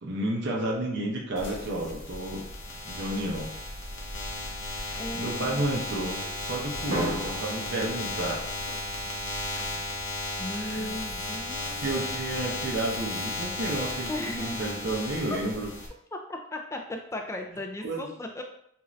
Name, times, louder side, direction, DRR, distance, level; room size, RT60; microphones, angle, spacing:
voice 1, 0.0-2.4 2.8-3.5 5.1-8.4 10.6-10.9 11.6-15.7 17.8-18.1, right 1 dB, 60° right, -2 dB, 0.6 m, -31 dB
sound 1, 1.4-15.9, left 2 dB, 75° left, 0.7 m, -35 dB
voice 2, 5.0-5.7 10.4-11.9 14.1-14.7 15.3-15.4 16.1-18.4, left 1 dB, 15° left, 3 dB, 0.3 m, -36 dB
Drum, 6.9-8.9, equal, 90° right, 0.8 m, -35 dB
2.6 x 2.5 x 3.1 m, 0.72 s
head